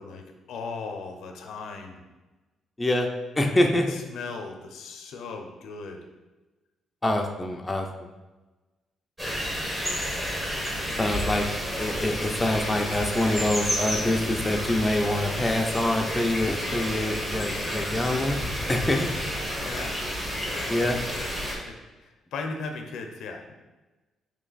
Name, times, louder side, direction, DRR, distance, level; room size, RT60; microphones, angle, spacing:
voice 1, 0.0-2.0 3.4-6.1 10.8-11.0 19.6-20.0 20.5-21.3 21.6-23.5, left 4 dB, 80° left, 4 dB, 0.5 m, -38 dB
voice 2, 2.8-3.1 3.4-3.9 7.0-8.1 11.0-18.4 18.7-19.1 20.7-21.0, left 1 dB, 15° left, 2 dB, 0.5 m, -25 dB
sound 1, 9.2-21.6, equal, 10° right, 1.1 m, -30 dB
3.2 x 3.0 x 4.0 m, 1.1 s
cardioid pair, 90°, 0 cm